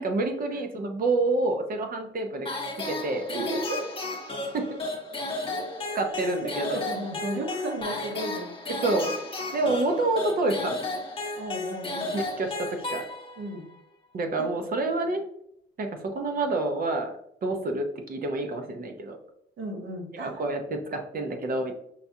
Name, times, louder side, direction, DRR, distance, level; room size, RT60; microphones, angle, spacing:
voice 1, 0.0-2.5 2.8-3.3 4.5-4.8 5.9-6.8 8.7-9.2 9.5-10.8 12.1-13.1 14.1-15.3 15.8-17.1 17.4-19.2 20.2-21.7, right 2 dB, 45° right, 5 dB, 0.7 m, -28 dB
sound 1, 2.5-13.6, left 2 dB, 25° left, 0.9 m, -33 dB
voice 2, 3.3-3.8 5.5-5.6 6.2-8.5 11.4-12.1 13.4-13.7 14.4-14.5 19.6-20.4, right 1 dB, 65° right, 1 dB, 1.1 m, -34 dB
5.6 x 2.3 x 2.7 m, 0.72 s
cardioid pair, 90°, 20 cm